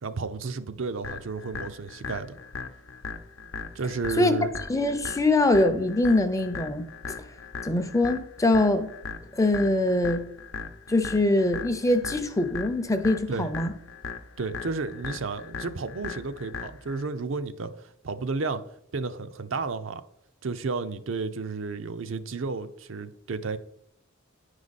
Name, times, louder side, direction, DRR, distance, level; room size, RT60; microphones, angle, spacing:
voice 1, 0.0-2.4 3.7-4.5 13.3-13.5 14.4-18.6 18.9-20.0 20.4-23.6, right 4 dB, 70° right, 0.6 m, -32 dB
sound 1, 1.0-17.0, left 5 dB, 80° left, 0.7 m, -39 dB
voice 2, 4.7-6.9 7.2-7.3 7.6-8.9 9.3-10.2 10.9-13.7, left 2 dB, 15° left, 0.6 m, -23 dB
10.0 x 4.9 x 4.1 m
head